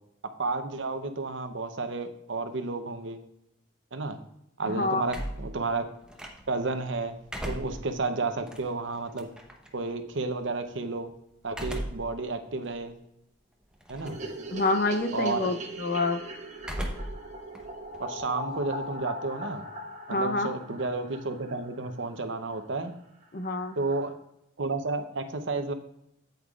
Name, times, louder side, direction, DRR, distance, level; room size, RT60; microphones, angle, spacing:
voice 1, 0.4-3.2 3.9-4.2 4.6-5.9 6.5-7.1 7.4-9.3 9.7-11.1 11.4-13.0 13.9-14.2 15.1-15.5 18.0-19.6 20.1-22.9 23.8-24.1 24.6-25.7, right 3 dB, 70° right, 7 dB, 0.8 m, -31 dB
voice 2, 4.7-5.0 14.5-16.2 20.1-20.5 23.3-23.8, left 2 dB, 50° left, 7 dB, 0.7 m, -27 dB
sound 1, 5.1-6.7 7.1-9.7 11.5-12.2 12.7-12.8 13.8-14.3 14.6-15.0 16.6-17.3 17.5-19.0, equal, 5° right, 0.8 m, -37 dB
sound 2, 14.0-22.3 22.5-22.6 22.9-23.0 23.2-23.3 23.5-24.1, equal, 35° right, 1.0 m, -40 dB
8.8 x 8.1 x 2.4 m, 0.81 s
head